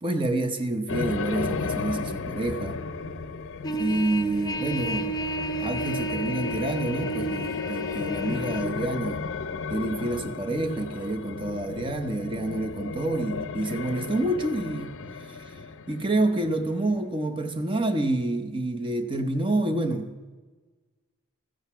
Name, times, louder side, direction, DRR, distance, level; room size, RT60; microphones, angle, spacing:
voice 1, 0.0-2.8 3.7-5.2 5.6-9.2 9.7-14.9 15.3-15.6 15.9-20.4, right 2 dB, 25° right, 7 dB, 0.7 m, -28 dB
sound 1, 0.9-17.1, left 4 dB, 60° left, 0.6 m, -34 dB
Trumpet, 3.6-8.7, right 1 dB, 20° left, 0.6 m, -32 dB
14.0 x 7.9 x 5.7 m, 1.3 s
head